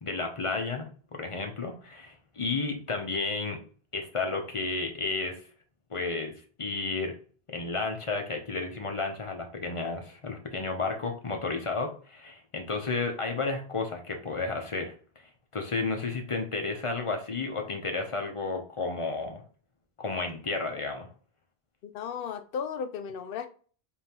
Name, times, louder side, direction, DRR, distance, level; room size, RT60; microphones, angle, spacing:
voice 1, 0.0-3.6 3.9-5.4 5.9-6.3 6.6-7.2 7.5-14.9 15.5-19.4 20.0-21.1, left 3 dB, 35° left, 3 dB, 0.7 m, -32 dB
voice 2, 21.8-23.5, left 7 dB, 65° left, 8 dB, 0.8 m, -35 dB
5.2 x 2.7 x 2.9 m, 0.41 s
omnidirectional pair, 1.0 m